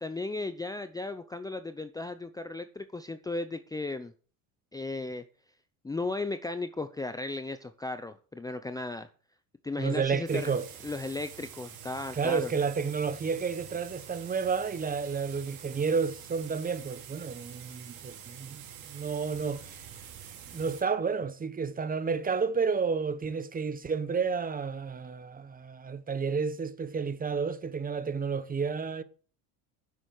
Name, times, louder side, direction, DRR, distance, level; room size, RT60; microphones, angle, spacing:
voice 1, 0.0-4.1 4.7-5.2 5.8-9.1 9.6-10.5 10.8-12.5, left 2 dB, 10° left, 0.6 m, -35 dB
voice 2, 9.8-10.7 12.1-19.8 20.5-29.0, right 5 dB, 20° right, 1.0 m, -31 dB
sound 1, 10.3-20.8, right 8 dB, 90° right, 4.4 m, -47 dB
10.0 x 7.3 x 6.4 m
supercardioid pair, 110°, 41 cm